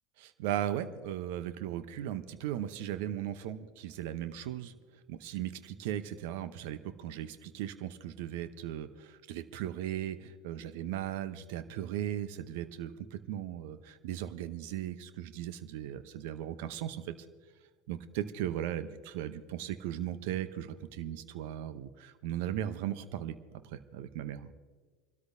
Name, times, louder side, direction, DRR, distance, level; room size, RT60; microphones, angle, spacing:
voice 1, 0.2-4.7 5.1-17.1 17.9-24.5, right 11 dB, 65° right, 12 dB, 0.8 m, -37 dB
27.0 x 13.0 x 2.7 m, 1.5 s
hypercardioid pair, 80°, 0 cm